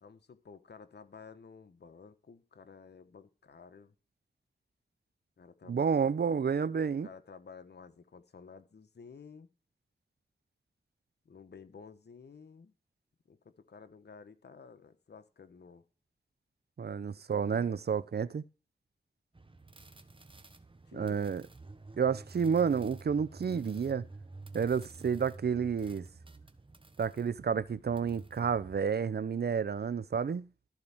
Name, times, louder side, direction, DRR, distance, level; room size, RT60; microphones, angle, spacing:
voice 1, 0.0-3.9 5.4-6.4 6.9-9.5 11.2-12.7 13.3-15.8 17.3-17.8 20.9-21.2, left 5 dB, 65° left, 1.2 m, -53 dB
voice 2, 5.7-7.1 16.8-18.4 20.9-21.4 22.0-24.0 24.5-26.1 27.0-30.5, right 6 dB, 60° right, 0.7 m, -30 dB
sound 1, 19.3-28.8, right 3 dB, 25° right, 1.2 m, -51 dB
13.5 x 4.6 x 7.1 m
cardioid pair, 45°, 19 cm